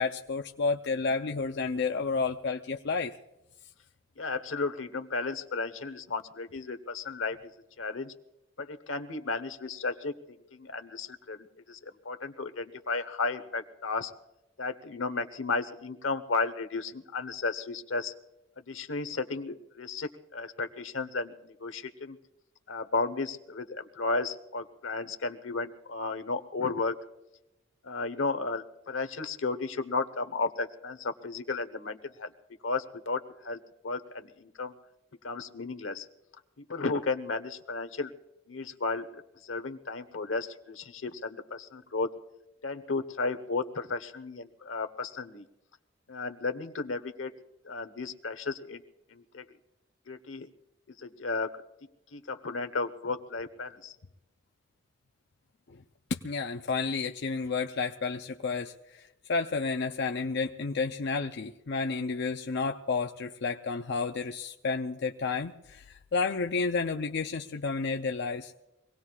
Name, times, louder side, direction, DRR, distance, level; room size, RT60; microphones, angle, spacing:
voice 1, 0.0-3.2 56.1-59.0 59.3-68.5, left 4 dB, 60° left, 4 dB, 0.6 m, -31 dB
voice 2, 4.2-7.4 7.8-8.1 8.6-10.1 10.5-14.1 14.6-18.1 18.7-22.2 22.7-26.9 27.8-32.3 32.6-33.6 33.8-34.7 35.2-36.1 36.7-38.1 38.5-42.1 42.6-45.4 46.1-47.3 47.6-48.8 49.1-49.4 50.1-50.5 51.0-51.6 52.1-53.9, left 3 dB, 85° left, 9 dB, 1.1 m, -34 dB
24.5 x 18.5 x 2.4 m, 0.93 s
head